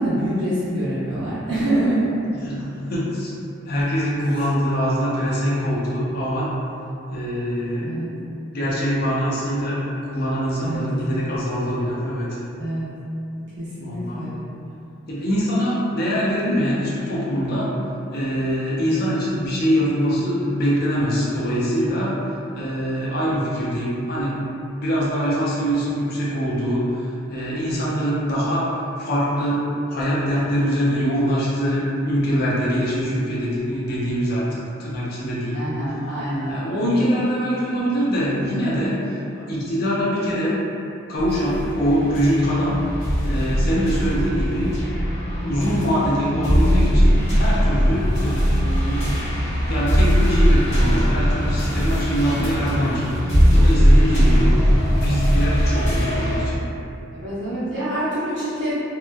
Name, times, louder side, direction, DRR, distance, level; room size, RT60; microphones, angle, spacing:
voice 1, 0.0-2.0 7.8-8.1 10.6-10.9 12.6-12.9 13.6-14.4 35.5-37.0 43.9-44.0 57.1-58.7, right 1 dB, 60° right, -11 dB, 0.9 m, -26 dB
voice 2, 2.3-3.3 3.7-6.5 7.1-8.1 8.5-12.4 13.8-14.2 15.1-17.7 18.1-22.2 22.5-27.0 27.3-35.6 36.5-39.2 39.5-40.5 41.1-42.8 43.2-44.8 45.4-49.3 49.7-56.6, equal, 50° left, -7 dB, 0.5 m, -23 dB
sound 1, 41.2-56.5, equal, 85° left, 1.1 m, -19 dB
2.9 x 2.0 x 2.2 m, 2.7 s
head